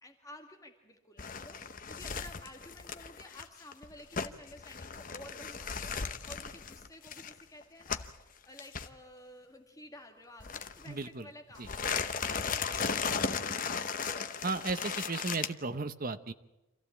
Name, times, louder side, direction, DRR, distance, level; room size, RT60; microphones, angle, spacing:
voice 1, 0.0-13.2, left 1 dB, 15° left, 3 dB, 2.1 m, -53 dB
sound 1, 1.2-8.2 8.6-8.9 10.4-11.1 11.6-15.5, left 5 dB, 40° left, 0.8 m, -36 dB
voice 2, 10.9-11.2 11.6-11.7 14.4-16.3, right 3 dB, 40° right, 10 dB, 0.9 m, -35 dB
26.5 x 15.0 x 8.7 m, 0.99 s
head